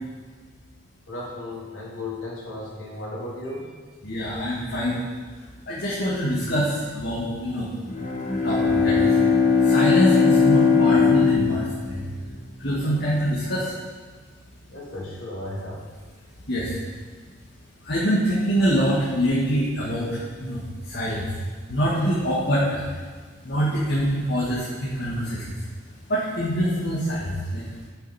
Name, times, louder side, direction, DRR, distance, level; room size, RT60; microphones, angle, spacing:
voice 1, 1.1-3.7 14.7-15.8, left 2 dB, 80° left, -6 dB, 3.6 m, -35 dB
voice 2, 4.0-5.0 5.7-7.7 8.3-9.1 9.6-12.0 12.6-13.7 16.5-16.8 17.8-21.3 21.7-22.8 23.4-25.5 26.1-27.6, equal, 55° left, -7 dB, 2.1 m, -25 dB
Bowed string instrument, 7.8-12.6, left 5 dB, 40° left, 1.7 m, -20 dB
11.5 x 8.2 x 4.4 m, 1.5 s
head